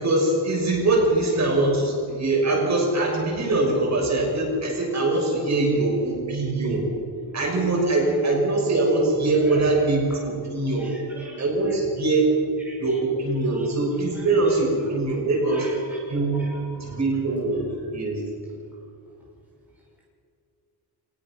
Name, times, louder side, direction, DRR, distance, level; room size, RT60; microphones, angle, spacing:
voice 1, 0.0-6.9 7.3-10.9 11.4-12.3 12.8-15.7 16.1-16.5 16.8-17.6 17.9-18.2, right 2 dB, 40° right, -2 dB, 7.0 m, -22 dB
voice 2, 10.8-11.4 12.7-12.8 15.4-16.0 16.3-16.9, right 1 dB, 5° right, -5 dB, 5.1 m, -40 dB
24.5 x 20.0 x 6.1 m, 2.4 s
wide cardioid pair, 150°, 40 cm